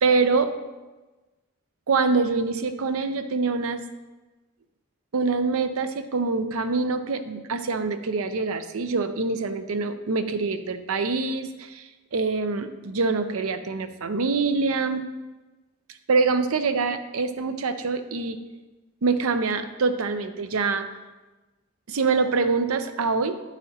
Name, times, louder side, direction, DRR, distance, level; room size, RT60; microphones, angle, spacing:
voice 1, 0.0-0.5 1.9-3.8 5.1-11.8 12.1-15.1 16.1-18.4 19.0-20.9 21.9-23.4, right 4 dB, 80° right, 10 dB, 0.6 m, -25 dB
9.8 x 8.1 x 2.8 m, 1.2 s
head